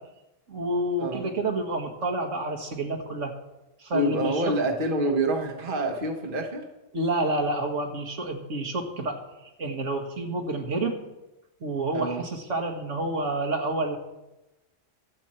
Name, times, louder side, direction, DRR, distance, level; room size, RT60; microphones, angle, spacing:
voice 1, 0.5-3.3 3.8-4.5 6.9-11.0 11.6-14.0, right 2 dB, 70° right, 3 dB, 2.0 m, -29 dB
voice 2, 1.0-1.3 3.9-6.7 11.9-12.2, right 1 dB, 45° right, 4 dB, 1.4 m, -27 dB
23.5 x 8.2 x 4.4 m, 0.98 s
omnidirectional pair, 1.3 m